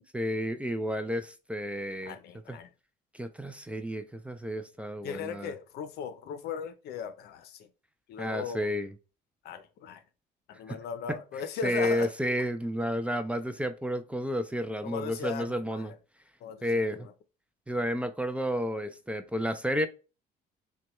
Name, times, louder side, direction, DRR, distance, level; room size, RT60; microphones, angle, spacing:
voice 1, 0.1-2.2 2.5-2.6 3.1-5.5 8.2-8.9 10.7-10.8 11.1-11.2 11.6-15.9 16.6-17.1 17.7-19.9, equal, 5° right, 0.4 m, -31 dB
voice 2, 2.0-2.7 5.0-7.7 8.1-8.7 9.4-10.0 10.5-12.1 14.8-16.0 16.4-17.1, left 7 dB, 70° left, 0.6 m, -38 dB
6.0 x 2.2 x 2.9 m
cardioid pair, 110°, 17 cm